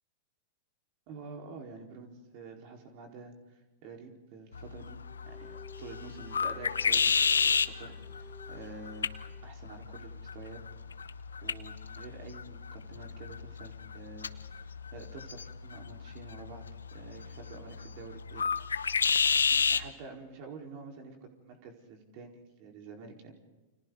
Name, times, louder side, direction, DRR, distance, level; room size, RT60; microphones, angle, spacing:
voice 1, 1.1-5.0 5.3-9.1 9.4-10.6 11.4-16.7 16.9-18.5 19.5-23.3, right 4 dB, 50° right, 2 dB, 4.5 m, -48 dB
sound 1, 4.5-19.9, left 6 dB, 85° left, 0.9 m, -32 dB
Bowed string instrument, 5.0-9.5, left 4 dB, 5° left, 4.2 m, -54 dB
29.5 x 26.0 x 4.0 m, 1.2 s
hypercardioid pair, 105°, 0 cm